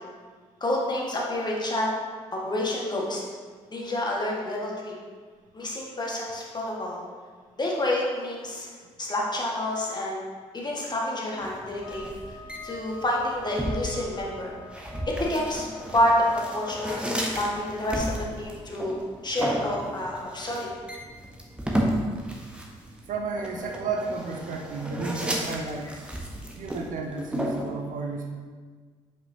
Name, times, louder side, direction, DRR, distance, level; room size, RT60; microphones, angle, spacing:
voice 1, 0.6-1.9 2.3-3.2 3.7-4.9 5.5-7.0 7.6-8.7 9.0-10.2 10.5-12.1 12.6-14.5 15.1-15.7 15.9-16.3 16.5-17.1 17.4-19.0 19.2-20.7, left 1 dB, 25° left, -3 dB, 1.7 m, -28 dB
sound 1, 11.4-27.7, equal, 5° right, 1.1 m, -33 dB
sound 2, 11.8-17.2, left 2 dB, 75° left, 0.5 m, -43 dB
voice 2, 23.1-26.1 26.6-28.3, right 4 dB, 50° right, 2 dB, 0.7 m, -32 dB
7.9 x 5.4 x 2.8 m, 1.5 s
figure-of-eight pair, 40°, 17 cm